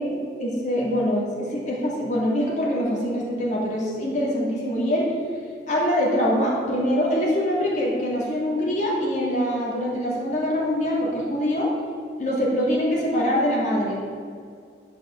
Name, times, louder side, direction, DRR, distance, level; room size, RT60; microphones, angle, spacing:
voice 1, 0.0-5.1 5.7-11.7 12.2-14.0, equal, 45° left, -4 dB, 2.8 m, -24 dB
11.5 x 6.2 x 7.4 m, 2.2 s
head